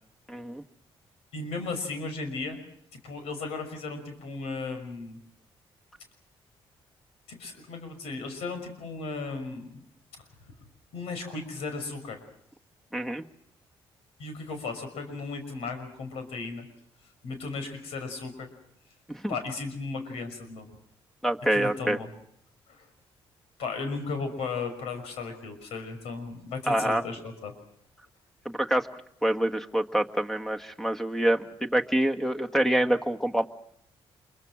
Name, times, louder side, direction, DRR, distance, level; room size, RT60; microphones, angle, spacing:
voice 1, 0.3-0.6 12.9-13.2 19.1-19.3 21.2-22.0 26.7-27.0 28.5-28.9 29.2-33.5, right 1 dB, 5° left, 8 dB, 1.7 m, -26 dB
voice 2, 1.3-2.6 3.0-5.2 7.3-9.8 10.9-12.2 14.2-16.7 17.2-18.5 19.3-20.7 21.5-22.1 22.7-22.9 23.6-27.5, left 4 dB, 90° left, 7 dB, 6.0 m, -35 dB
27.5 x 23.5 x 6.3 m, 0.71 s
cardioid pair, 90°, 10 cm